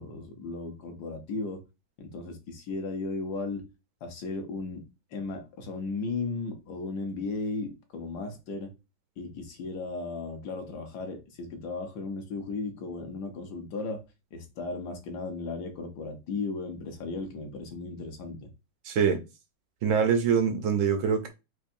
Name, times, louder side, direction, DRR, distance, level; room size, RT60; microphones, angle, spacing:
voice 1, 0.0-1.6 2.0-3.7 4.0-4.8 5.1-8.7 9.2-14.0 14.3-18.5, left 3 dB, 65° left, 1.3 m, -35 dB
voice 2, 18.8-19.2 19.8-21.3, right 6 dB, 80° right, 0.7 m, -24 dB
4.5 x 2.6 x 2.6 m
omnidirectional pair, 2.1 m